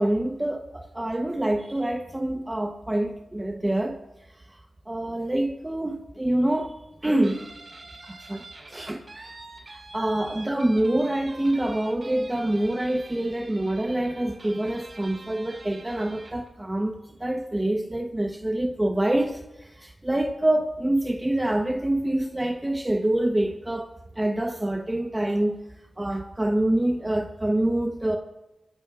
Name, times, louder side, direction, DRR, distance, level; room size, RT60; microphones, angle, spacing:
voice 1, 0.0-4.0 4.5-4.6 4.9-7.5 8.0-9.3 9.7-25.6 26.0-28.2, right 1 dB, 20° right, 1.0 m, -26 dB
Guitar, 7.2-16.5, right 2 dB, 50° right, 5.0 m, -45 dB
27.0 x 16.0 x 2.5 m
wide cardioid pair, 90°, 0 cm